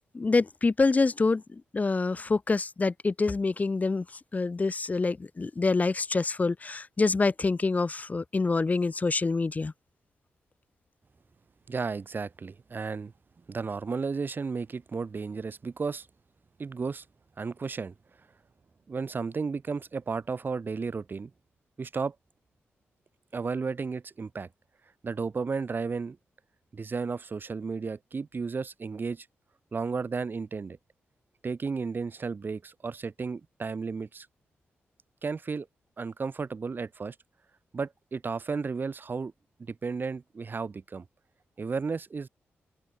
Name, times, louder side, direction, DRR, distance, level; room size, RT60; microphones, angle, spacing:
voice 1, 0.1-4.1 4.3-9.7, left 3 dB, 35° left, 2.0 m, -26 dB
voice 2, 11.7-13.1 13.5-16.1 16.6-17.0 17.4-17.9 18.9-21.3 21.8-22.1 23.3-24.5 25.0-26.2 26.7-29.3 29.7-30.8 31.4-34.3 35.2-35.7 36.0-37.1 37.7-39.3 39.6-41.1 41.6-42.3, right 4 dB, 45° right, 6.1 m, -33 dB
open air
cardioid pair, 75°, 5 cm